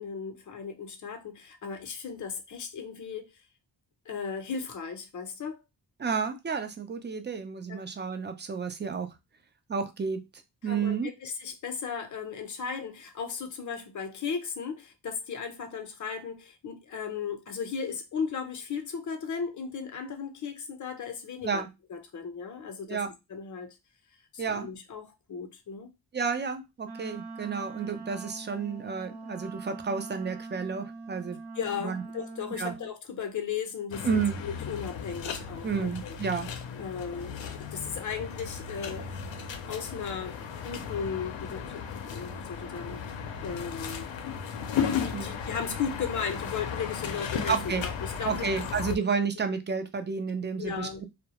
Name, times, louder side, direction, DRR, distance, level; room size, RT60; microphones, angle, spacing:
voice 1, 0.0-3.4 4.1-5.6 7.7-7.8 10.6-21.6 21.9-23.8 24.3-25.9 31.5-36.2 36.8-39.3 39.7-43.0 43.4-44.1 45.0-49.0 50.6-51.0, left 6 dB, 45° left, 0.6 m, -36 dB
voice 2, 6.0-9.1 9.7-10.2 10.6-11.1 21.4-21.7 22.9-23.1 24.4-24.7 26.1-31.4 31.8-32.0 32.6-32.7 34.0-34.4 35.6-36.5 45.1-45.3 47.5-47.8 48.2-51.0, right 5 dB, 25° right, 0.4 m, -31 dB
Wind instrument woodwind instrument, 26.8-32.9, right 3 dB, 60° right, 0.7 m, -42 dB
sound 1, 33.9-49.0, left 7 dB, 85° left, 0.6 m, -35 dB
2.2 x 2.0 x 2.9 m
wide cardioid pair, 85°, 44 cm